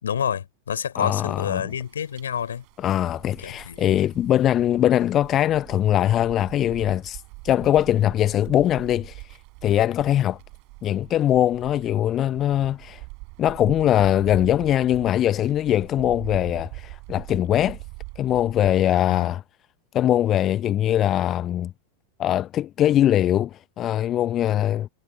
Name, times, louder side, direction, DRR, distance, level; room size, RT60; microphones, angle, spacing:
voice 1, 0.0-2.6 3.4-3.8 19.1-19.3, left 8 dB, 65° left, 4.4 m, -28 dB
voice 2, 1.0-1.7 2.8-10.4 10.8-13.0 13.4-17.8 18.2-19.4 19.9-21.7 22.2-24.9, left 11 dB, 30° left, 0.7 m, -22 dB
sound 1, 1.7-18.7, right 30 dB, 45° right, 6.4 m, -42 dB
figure-of-eight pair, 90°, 0 cm